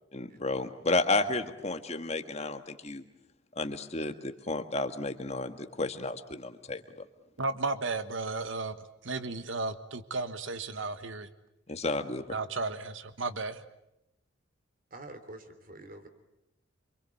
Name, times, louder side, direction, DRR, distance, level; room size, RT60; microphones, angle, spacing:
voice 1, 0.1-3.0 3.5-6.8 11.7-12.2, left 2 dB, 30° left, 7 dB, 1.7 m, -32 dB
voice 2, 7.4-8.7 9.0-11.3 12.3-13.6, right 3 dB, 70° right, 12 dB, 1.3 m, -34 dB
voice 3, 14.9-16.1, right 2 dB, 45° right, 9 dB, 3.2 m, -46 dB
27.0 x 25.0 x 8.5 m, 0.86 s
head